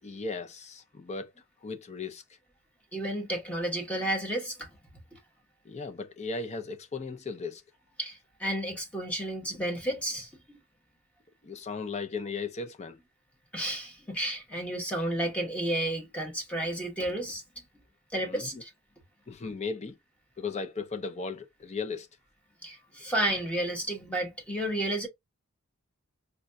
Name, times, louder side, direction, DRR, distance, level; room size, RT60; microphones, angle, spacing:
voice 1, 0.0-1.3 1.6-2.2 5.6-7.6 11.4-13.0 18.2-18.6 19.3-19.9 20.4-22.1, left 4 dB, 30° left, 0.6 m, -36 dB
voice 2, 2.9-4.7 8.0-10.6 13.5-17.4 18.1-18.7 22.6-25.1, right 1 dB, 5° left, 1.0 m, -32 dB
5.0 x 2.3 x 2.5 m
head